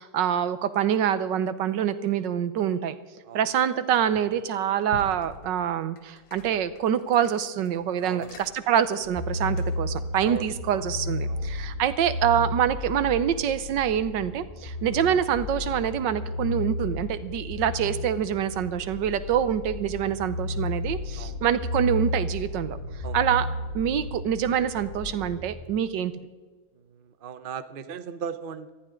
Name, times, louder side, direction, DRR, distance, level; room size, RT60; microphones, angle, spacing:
voice 1, 0.0-2.9 3.3-22.8 23.1-23.5 23.7-26.1, right 9 dB, 75° right, 14 dB, 1.5 m, -25 dB
sound 1, 3.9-4.5 4.9-10.0, left 4 dB, 60° left, 1.8 m, -46 dB
voice 2, 8.0-8.4 10.2-10.8 11.3-11.5 19.3-19.4 21.2-21.4 23.0-23.2 26.8-28.7, right 7 dB, 55° right, 11 dB, 0.6 m, -38 dB
sound 2, 9.2-25.7, left 2 dB, 40° left, 2.3 m, -33 dB
20.0 x 14.0 x 3.8 m, 1.3 s
omnidirectional pair, 2.0 m